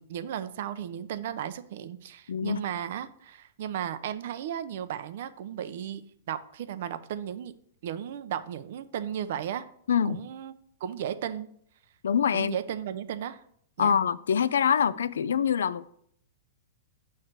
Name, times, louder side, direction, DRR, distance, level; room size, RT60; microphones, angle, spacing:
voice 1, 0.0-6.0 6.3-7.5 7.8-9.7 10.0-10.5 10.8-11.5 12.3-13.4 13.8-14.0, right 9 dB, 65° right, 0.6 m, -35 dB
voice 2, 2.3-2.6 9.9-10.2 12.0-12.6 13.8-15.9, left 7 dB, 80° left, 0.3 m, -25 dB
6.4 x 3.2 x 5.8 m
hypercardioid pair, 125°, 0 cm